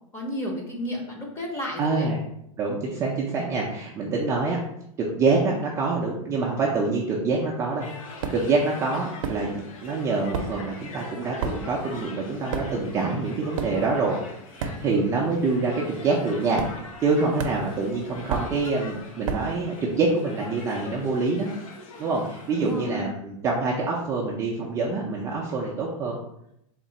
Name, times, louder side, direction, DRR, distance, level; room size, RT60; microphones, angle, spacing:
voice 1, 0.1-2.1 4.0-4.2 22.5-23.1, equal, 15° left, 0 dB, 0.7 m, -32 dB
voice 2, 1.8-2.2 2.6-4.6 5.1-7.9 8.3-14.2 14.8-16.6 17.0-21.5 22.0-26.2, right 3 dB, 15° right, -3 dB, 0.4 m, -26 dB
sound 1, 7.8-23.0, left 3 dB, 85° left, 0.7 m, -44 dB
sound 2, 8.2-8.6 9.2-9.9 10.1-15.2 15.5-15.8 16.6-17.1 17.4-19.6, right 5 dB, 70° right, 0.6 m, -33 dB
3.6 x 2.4 x 4.0 m, 0.78 s
supercardioid pair, 155°, 17 cm